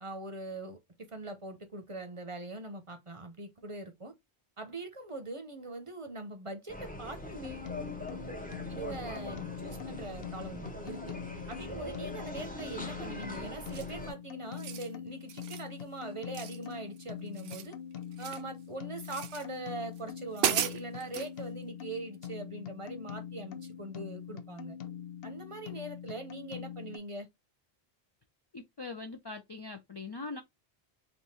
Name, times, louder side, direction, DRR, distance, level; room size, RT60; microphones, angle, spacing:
voice 1, 0.0-4.1 4.6-7.7 8.7-11.1 11.5-17.7 18.2-24.8 25.2-27.3, right 2 dB, 35° right, 0.7 m, -42 dB
sound 1, 6.7-14.1, left 1 dB, 10° left, 0.7 m, -42 dB
sound 2, 7.4-27.0, left 9 dB, 70° left, 0.9 m, -44 dB
sound 3, 13.7-14.0 14.5-14.9 15.3-15.7 16.3-17.0 17.3-18.5 19.0-19.4 20.0-20.1 20.3-21.3, right 10 dB, 75° right, 0.8 m, -35 dB
voice 2, 28.5-30.4, left 3 dB, 40° left, 0.3 m, -42 dB
3.6 x 2.6 x 4.2 m
omnidirectional pair, 1.0 m